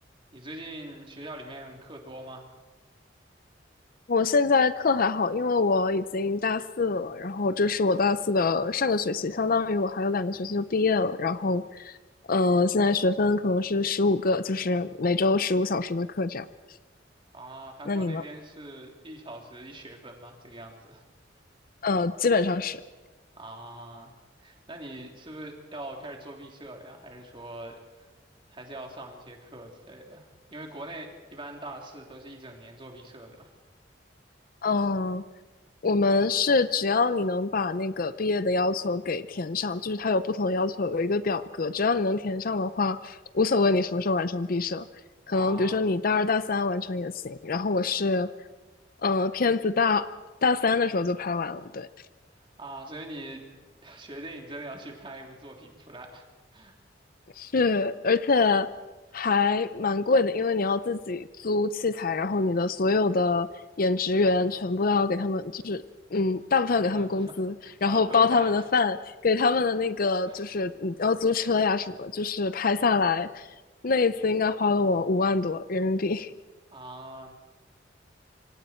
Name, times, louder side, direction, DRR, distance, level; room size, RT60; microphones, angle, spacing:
voice 1, 0.3-2.5 17.3-21.0 23.3-24.1 24.4-28.1 28.5-33.5 45.3-45.9 52.6-53.4 53.8-56.2 56.5-56.7 66.8-67.3 67.6-68.6 70.3-70.4 76.7-77.3, right 1 dB, 30° right, 1 dB, 3.3 m, -42 dB
voice 2, 4.1-12.0 12.3-16.5 17.9-18.2 21.8-22.8 34.6-35.2 35.8-44.9 45.3-48.3 49.0-50.1 50.4-51.9 57.4-58.7 59.1-63.5 63.8-65.8 66.1-67.5 67.8-69.0 69.2-73.5 73.8-76.3, left 3 dB, 50° left, 14 dB, 0.6 m, -25 dB
27.0 x 25.0 x 4.5 m, 1.2 s
head